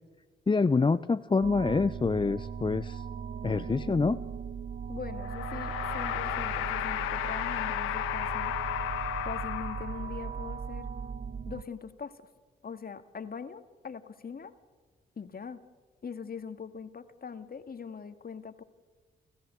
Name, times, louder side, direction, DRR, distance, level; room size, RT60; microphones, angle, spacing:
voice 1, 0.5-3.0 3.4-4.2, left 4 dB, 25° left, 13 dB, 0.6 m, -26 dB
sound 1, 1.4-11.6, right 6 dB, 40° right, 0.7 m, -38 dB
voice 2, 4.9-8.5 9.2-10.9 11.5-12.3 12.6-14.5 15.2-15.6 16.0-18.6, left 6 dB, 45° left, 9 dB, 1.9 m, -42 dB
sound 2, 5.2-10.3, left 13 dB, 90° left, 1.2 m, -33 dB
30.0 x 14.0 x 7.7 m, 1.4 s
supercardioid pair, 45°, 21 cm